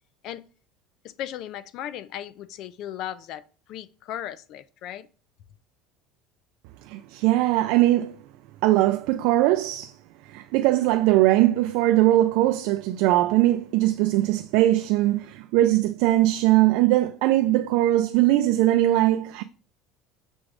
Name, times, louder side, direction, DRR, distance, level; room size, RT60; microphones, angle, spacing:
voice 1, 1.0-3.4 3.7-5.1, left 11 dB, 40° left, 0.3 m, -36 dB
voice 2, 6.8-8.2 8.6-9.9 10.3-19.4, right 15 dB, 60° right, 0.3 m, -20 dB
6.1 x 3.1 x 4.8 m
cardioid pair, 175°, 0 cm